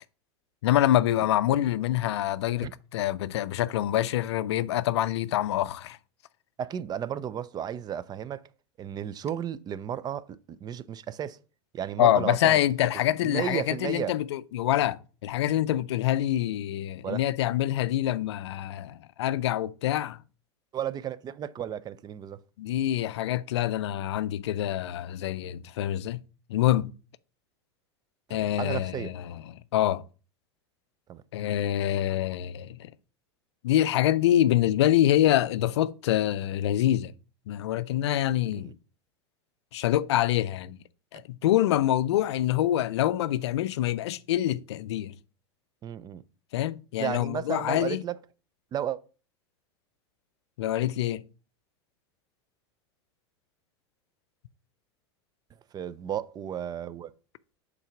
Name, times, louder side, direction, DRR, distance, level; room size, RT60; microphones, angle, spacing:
voice 1, 0.6-6.0 12.0-20.2 22.6-26.2 26.5-26.9 28.3-30.0 31.3-32.9 33.6-37.1 37.5-38.7 39.7-40.8 41.1-45.1 46.5-48.0 50.6-51.2, left 12 dB, 85° left, 0.4 m, -26 dB
voice 2, 6.6-8.5 8.8-11.4 11.7-12.6 13.2-14.1 17.0-17.2 20.7-22.4 28.3-29.1 31.1-31.2 38.6-38.7 45.8-46.2 47.0-48.2 48.7-49.0 55.7-57.1, right 9 dB, 30° right, 0.4 m, -33 dB
5.7 x 4.0 x 5.7 m
hypercardioid pair, 105°, 14 cm